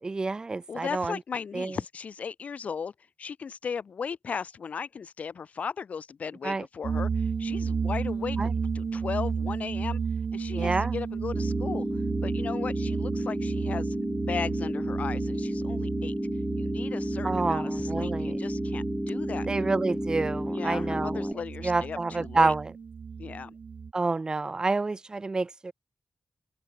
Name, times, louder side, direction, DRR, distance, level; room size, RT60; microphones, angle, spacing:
voice 1, 0.0-1.2 1.5-1.8 6.4-6.6 8.4-8.5 10.5-10.9 17.2-18.4 19.5-21.3 21.6-22.7 23.9-25.7, right 3 dB, 30° right, 1.4 m, -28 dB
voice 2, 0.7-2.9 3.2-10.0 10.3-11.9 12.2-14.0 14.3-16.1 16.6-19.5 20.5-22.5 23.2-23.5, left 6 dB, 65° left, 2.1 m, -36 dB
sound 1, 6.8-23.9, right 5 dB, 55° right, 1.3 m, -33 dB
sound 2, 11.3-21.3, equal, ahead, 1.4 m, -31 dB
open air
wide cardioid pair, 140°, 3 cm